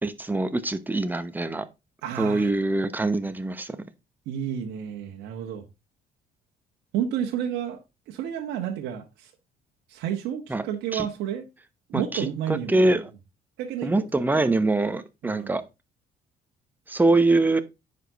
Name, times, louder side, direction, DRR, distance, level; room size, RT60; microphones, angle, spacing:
voice 1, 0.0-1.7 2.2-3.8 10.5-10.7 10.9-11.1 11.9-13.1 13.8-15.6 16.9-17.6, right 2 dB, 10° right, 0.9 m, -24 dB
voice 2, 2.0-2.5 4.3-5.6 6.9-7.8 8.1-9.3 9.9-11.4 11.9-12.9 13.6-14.0 15.2-15.5, right 9 dB, 85° right, 1.3 m, -30 dB
9.8 x 5.2 x 4.0 m
cardioid pair, 110°, 17 cm